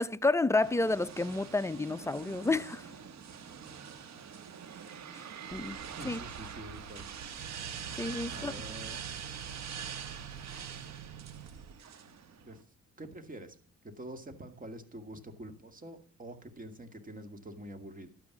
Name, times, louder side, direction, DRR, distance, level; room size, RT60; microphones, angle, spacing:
voice 1, 0.0-2.9 5.5-5.8 6.0-6.2 8.0-8.5, left 2 dB, 10° left, 0.5 m, -30 dB
sound 1, 0.6-12.6, right 7 dB, 60° right, 1.5 m, -44 dB
sound 2, 5.5-11.8, right 7 dB, 80° right, 1.2 m, -48 dB
voice 2, 6.0-7.1 8.3-9.0 12.4-12.6 13.0-13.6 13.8-18.1, right 1 dB, 25° right, 2.2 m, -46 dB
12.0 x 8.9 x 6.1 m
cardioid pair, 90°, 30 cm